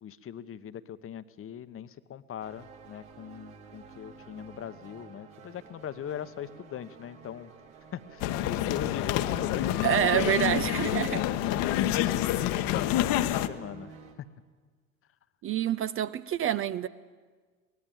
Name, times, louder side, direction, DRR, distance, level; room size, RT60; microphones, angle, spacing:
voice 1, 0.0-7.5 7.9-10.5 11.0-14.0, left 9 dB, 30° left, 1.0 m, -40 dB
sound 1, 2.4-14.1, right 5 dB, 70° right, 3.1 m, -51 dB
sound 2, 8.2-13.5, left 13 dB, 50° left, 1.2 m, -28 dB
voice 2, 9.8-11.2 15.4-16.9, right 10 dB, 30° right, 0.6 m, -27 dB
23.5 x 19.0 x 8.8 m
figure-of-eight pair, 75°, 43 cm